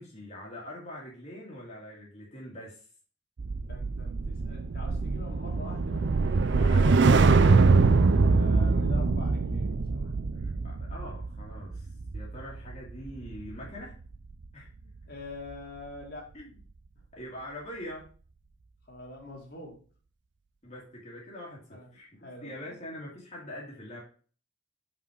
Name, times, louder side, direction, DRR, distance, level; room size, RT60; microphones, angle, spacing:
voice 1, 0.0-2.9 6.4-7.6 10.3-14.0 14.5-14.7 16.3-16.5 17.1-18.1 20.6-22.1 22.4-24.0, left 1 dB, 35° left, -4 dB, 2.0 m, -43 dB
sound 1, 3.4-13.8 14.1-14.4, right 4 dB, 60° right, 0.5 m, -24 dB
voice 2, 3.6-6.1 8.2-10.1 15.1-16.3 18.9-19.8 21.7-21.9 22.2-22.8, left 2 dB, 50° left, -1 dB, 2.2 m, -45 dB
5.5 x 4.9 x 4.8 m, 0.40 s
head